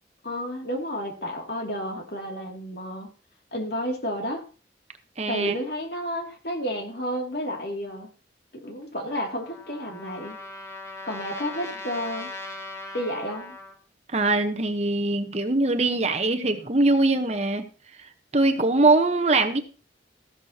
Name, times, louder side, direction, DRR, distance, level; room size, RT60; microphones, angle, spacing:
voice 1, 0.2-3.1 3.5-4.4 5.3-8.1 8.5-10.4 11.0-12.3 12.9-13.6, equal, 60° left, 2 dB, 2.6 m, -31 dB
voice 2, 5.2-5.6 14.1-17.6 18.3-19.6, right 2 dB, 35° right, 6 dB, 1.0 m, -22 dB
Trumpet, 9.1-13.8, left 2 dB, 15° left, 2.1 m, -39 dB
14.5 x 11.5 x 2.9 m, 0.35 s
head